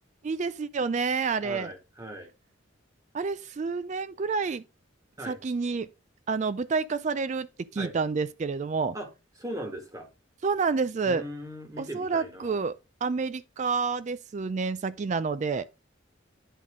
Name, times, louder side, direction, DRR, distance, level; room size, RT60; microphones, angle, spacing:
voice 1, 0.2-1.7 3.1-4.6 5.3-5.9 6.3-7.5 7.7-9.0 10.4-11.2 11.8-12.8 13.0-15.6, right 4 dB, 35° right, 0.3 m, -29 dB
voice 2, 1.4-2.3 5.2-5.4 7.8-7.9 8.9-9.1 9.4-10.1 11.0-12.6, equal, 15° right, 1.7 m, -39 dB
10.0 x 4.1 x 3.6 m
head